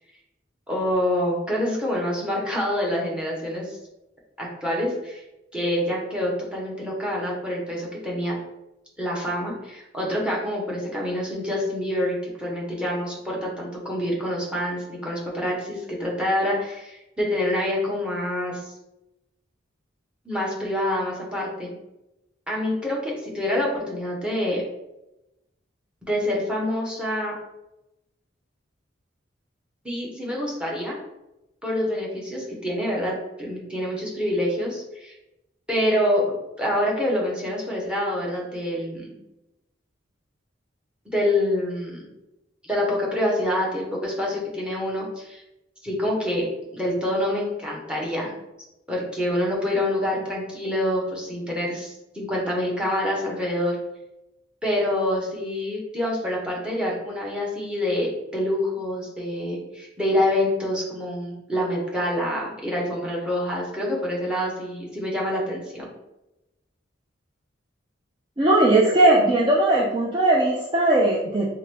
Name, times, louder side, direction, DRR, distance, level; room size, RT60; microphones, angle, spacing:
voice 1, 0.7-3.8 4.4-5.2 5.5-8.4 9.0-18.7 20.2-21.7 22.5-24.6 26.0-27.3 29.8-31.0 31.6-35.1 35.7-36.2 36.6-39.1 41.0-42.1 42.6-45.4 45.8-46.5 46.7-48.3 48.9-53.8 54.6-65.9, left 1 dB, 5° right, -3 dB, 0.9 m, -26 dB
voice 2, 68.4-71.5, right 2 dB, 25° right, -3 dB, 0.4 m, -19 dB
3.7 x 3.3 x 3.3 m, 0.94 s
head